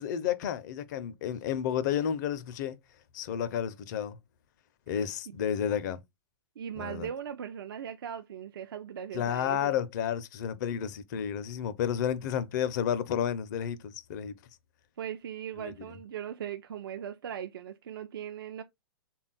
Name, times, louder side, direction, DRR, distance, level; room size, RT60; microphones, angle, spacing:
voice 1, 0.0-2.8 3.1-4.2 4.9-6.0 6.8-7.1 9.1-14.3 15.6-15.7, left 9 dB, 50° left, 0.5 m, -31 dB
voice 2, 6.6-9.8 15.0-18.6, right 9 dB, 65° right, 0.4 m, -39 dB
3.5 x 2.3 x 3.9 m
figure-of-eight pair, 110°, 13 cm